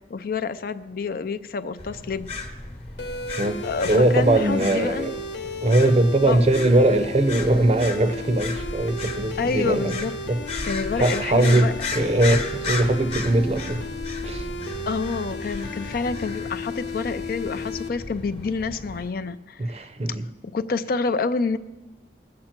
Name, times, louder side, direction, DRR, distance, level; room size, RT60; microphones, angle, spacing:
voice 1, 0.1-2.3 3.6-5.1 6.3-6.4 9.4-10.2 10.6-11.7 14.9-19.6 20.1-20.2 20.5-21.6, left 4 dB, 55° left, 12 dB, 0.4 m, -28 dB
sound 1, 1.8-19.1, left 3 dB, 35° left, 1.0 m, -35 dB
sound 2, 3.0-17.9, left 2 dB, 85° left, 1.1 m, -34 dB
voice 2, 3.9-5.1 5.6-9.9 10.3-10.4 11.0-13.8 14.2-14.5 19.6-20.3, right 1 dB, 35° right, 10 dB, 0.6 m, -20 dB
19.5 x 7.7 x 4.4 m, 1.1 s
head